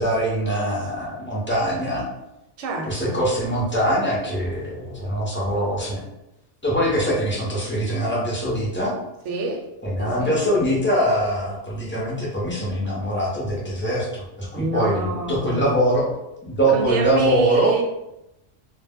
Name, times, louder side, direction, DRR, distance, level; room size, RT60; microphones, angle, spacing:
voice 1, 0.0-2.1 2.9-6.0 6.6-9.0 9.8-16.1 16.4-17.7, equal, 15° left, -5 dB, 0.5 m, -23 dB
voice 2, 2.6-3.2 9.3-9.7 10.0-10.4 14.5-15.7 16.6-17.8, right 4 dB, 80° right, 1 dB, 0.9 m, -25 dB
2.1 x 2.1 x 3.4 m, 0.90 s
omnidirectional pair, 1.2 m